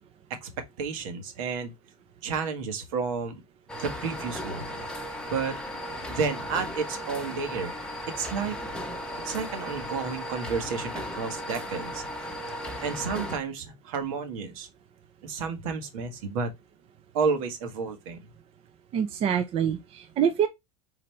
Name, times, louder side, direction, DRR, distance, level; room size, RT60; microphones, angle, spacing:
voice 1, 0.8-1.7 2.2-3.3 3.8-4.6 5.3-5.6 6.1-7.7 8.2-8.6 9.2-12.0 12.8-14.7 15.2-16.5 17.1-18.2, right 5 dB, 70° right, 1.5 m, -31 dB
sound 1, 3.7-13.4, equal, 5° left, 0.9 m, -36 dB
voice 2, 18.9-20.5, right 8 dB, 35° right, 0.7 m, -25 dB
4.1 x 4.0 x 3.2 m
supercardioid pair, 130°, 18 cm